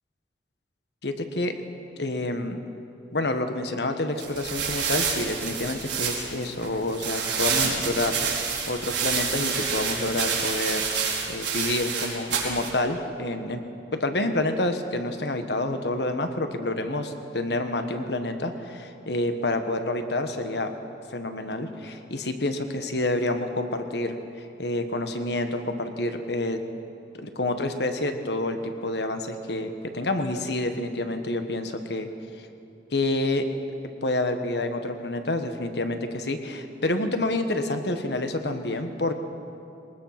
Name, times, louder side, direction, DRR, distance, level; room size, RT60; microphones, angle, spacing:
voice 1, 1.0-1.5 2.0-2.6 3.1-8.2 8.7-10.9 11.3-13.6 13.9-20.7 21.1-24.2 24.6-26.6 27.2-32.1 32.4-32.5 32.9-33.5 34.0-39.1, left 2 dB, 70° left, 7 dB, 1.4 m, -28 dB
sound 1, 4.2-12.7, right 6 dB, 90° right, 4.7 m, -28 dB
22.5 x 19.5 x 6.0 m, 2.8 s
head